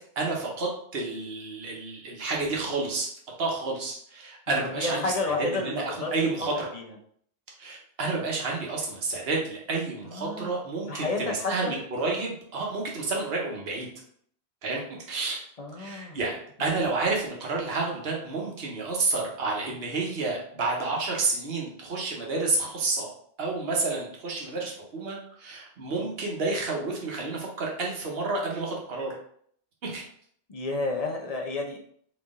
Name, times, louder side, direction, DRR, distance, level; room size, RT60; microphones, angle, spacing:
voice 1, 0.2-3.1 3.4-6.7 7.6-13.9 14.6-15.4 15.8-16.3 16.6-23.1 23.4-29.1 29.8-30.0, right 3 dB, 70° right, -2 dB, 1.2 m, -30 dB
voice 2, 4.5-6.1 6.7-6.8 10.0-10.6 10.9-11.7 15.6-16.2 30.5-31.8, left 3 dB, 40° left, 1 dB, 0.7 m, -31 dB
4.1 x 2.9 x 3.6 m, 0.62 s
omnidirectional pair, 1.1 m